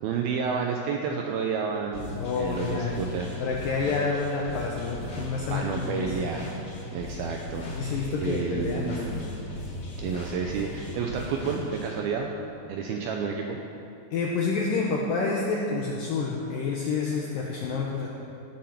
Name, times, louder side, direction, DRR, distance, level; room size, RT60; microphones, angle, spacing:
voice 1, 0.0-3.3 5.5-6.6 6.9-9.2 10.0-12.3 12.7-13.6, right 6 dB, 80° right, 2 dB, 2.2 m, -30 dB
sound 1, 1.9-12.0, left 1 dB, 35° left, 2.9 m, -37 dB
voice 2, 2.2-3.0 3.4-6.3 7.7-9.2 14.1-18.1, left 4 dB, 75° left, -2 dB, 2.1 m, -29 dB
17.0 x 8.1 x 5.9 m, 2.9 s
omnidirectional pair, 5.2 m